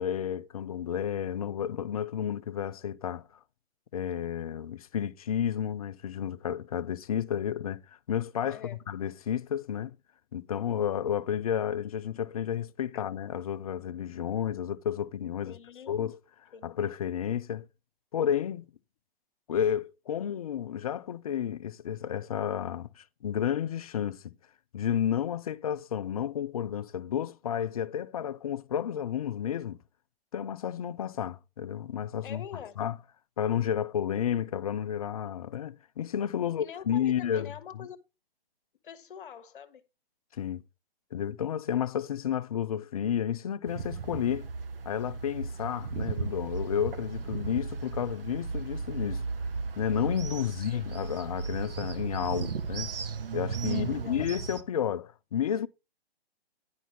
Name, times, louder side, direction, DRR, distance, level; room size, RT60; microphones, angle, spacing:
voice 1, 0.0-3.3 3.9-10.0 10.3-15.6 15.9-16.2 16.6-17.7 18.1-18.7 19.5-24.3 24.7-29.8 30.3-32.4 32.8-33.0 33.4-37.9 40.3-40.6 41.1-44.5 44.9-49.2 49.8-52.9 53.3-55.7, left 9 dB, 35° left, 0.5 m, -31 dB
voice 2, 15.4-16.0 16.5-16.7 32.2-32.8 36.4-38.0 38.8-39.8 50.4-50.5 53.7-54.3, left 8 dB, 55° left, 1.2 m, -45 dB
sound 1, 43.7-54.6, right 4 dB, 65° right, 1.0 m, -35 dB
10.5 x 4.0 x 6.1 m
hypercardioid pair, 145°, 31 cm